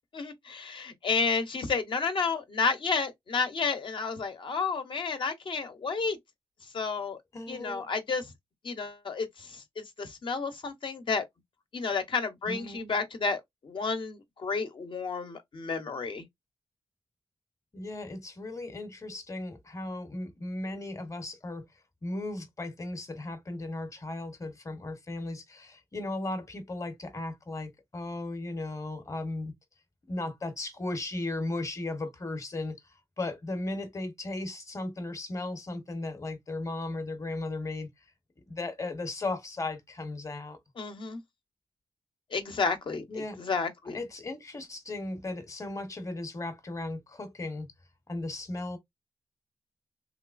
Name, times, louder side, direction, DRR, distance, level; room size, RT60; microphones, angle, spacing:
voice 1, 0.1-6.2 6.7-7.2 7.5-8.3 8.6-11.2 11.7-16.2 40.8-41.2 42.3-44.0, left 4 dB, 60° left, 0.9 m, -31 dB
voice 2, 7.3-7.9 12.5-12.9 17.7-21.6 22.0-29.5 30.1-32.7 33.2-37.9 38.5-40.6 43.1-43.4 43.9-47.7 48.1-48.8, left 2 dB, 30° left, 1.0 m, -36 dB
3.2 x 3.1 x 2.5 m
wide cardioid pair, 90°, 10 cm